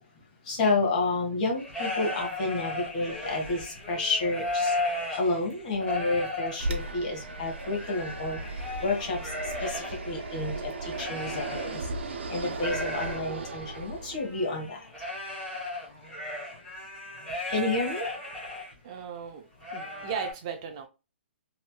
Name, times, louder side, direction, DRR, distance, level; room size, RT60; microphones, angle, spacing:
voice 1, 0.4-8.4 8.8-14.8 17.5-18.0, left 2 dB, 40° left, 1.4 m, -30 dB
sound 1, 1.6-12.0 12.3-18.7 19.1-19.2 19.6-20.3, left 2 dB, 10° left, 1.2 m, -36 dB
Fixed-wing aircraft airplane, 6.6-14.4, right 2 dB, 65° right, 0.8 m, -36 dB
voice 2, 18.8-20.9, right 7 dB, 25° right, 0.4 m, -37 dB
3.1 x 3.0 x 2.2 m
hypercardioid pair, 165°, 7 cm